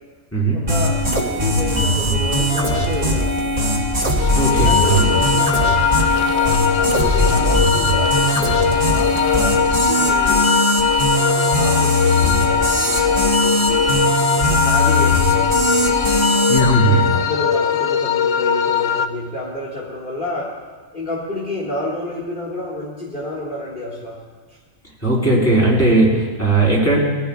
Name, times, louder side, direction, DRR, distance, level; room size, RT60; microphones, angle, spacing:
voice 1, 0.5-3.8 4.6-5.8 6.3-10.5 11.1-16.0 17.1-20.5 20.9-24.2, left 1 dB, 35° left, -7 dB, 2.1 m, -30 dB
sound 1, 0.7-16.7, equal, 35° right, 2.5 m, -20 dB
sound 2, 4.2-19.1, left 8 dB, 65° left, 0.8 m, -20 dB
voice 2, 4.4-5.2 16.5-17.1 25.0-27.0, right 2 dB, 10° left, -4 dB, 4.1 m, -17 dB
21.5 x 15.5 x 2.4 m, 1.5 s
omnidirectional pair, 1.5 m